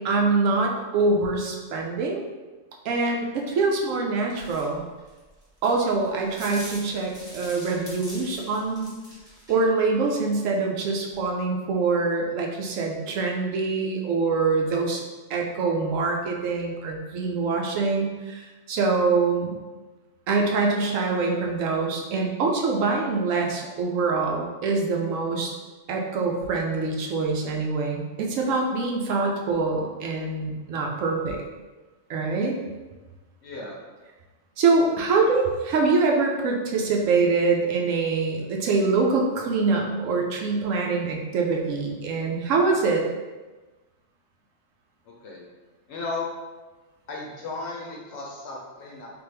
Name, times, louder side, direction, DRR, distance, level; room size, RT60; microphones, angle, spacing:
voice 1, 0.0-2.2 2.8-4.8 5.6-8.9 9.5-15.0 15.3-19.5 20.3-25.5 25.9-31.4 32.1-32.6 34.6-43.0, right 4 dB, 75° right, 0 dB, 0.9 m, -24 dB
sound 1, 4.4-9.6, equal, 5° right, 0.8 m, -43 dB
voice 2, 33.4-33.8 45.1-45.4 45.9-46.3 47.1-49.1, left 3 dB, 60° left, -3 dB, 0.8 m, -35 dB
3.4 x 2.5 x 3.3 m, 1.2 s
omnidirectional pair, 1.4 m